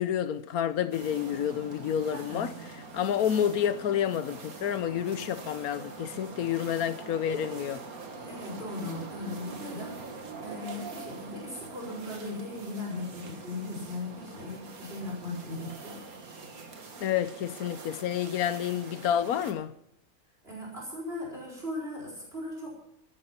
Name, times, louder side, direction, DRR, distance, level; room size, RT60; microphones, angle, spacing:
voice 1, 0.0-2.5 2.9-7.8 17.0-19.7, left 9 dB, 80° left, 1.3 m, -29 dB
sound 1, 0.9-19.5, right 4 dB, 75° right, 2.0 m, -44 dB
voice 2, 2.1-2.5 8.2-16.0 20.4-22.7, left 2 dB, 40° right, 5.1 m, -38 dB
15.0 x 11.5 x 5.9 m
omnidirectional pair, 1.5 m